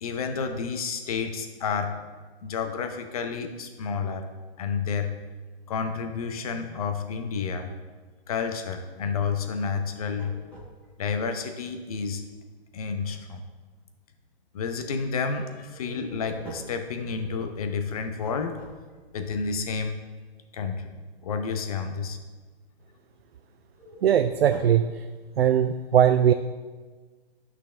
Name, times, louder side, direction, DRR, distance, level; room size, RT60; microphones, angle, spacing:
voice 1, 0.0-2.0 2.4-4.3 4.6-5.2 5.7-7.7 8.3-10.4 11.0-12.2 12.7-13.4 14.5-18.6 19.1-20.0 20.5-20.9 21.2-22.2, left 5 dB, 35° left, 6 dB, 0.8 m, -30 dB
sound 1, 10.0-11.2 15.7-19.2 23.7-24.9, right 2 dB, 5° left, 1.0 m, -45 dB
voice 2, 24.0-25.1 25.4-26.3, right 9 dB, 75° right, 9 dB, 0.5 m, -20 dB
12.0 x 6.2 x 3.3 m, 1.4 s
hypercardioid pair, 160°, 31 cm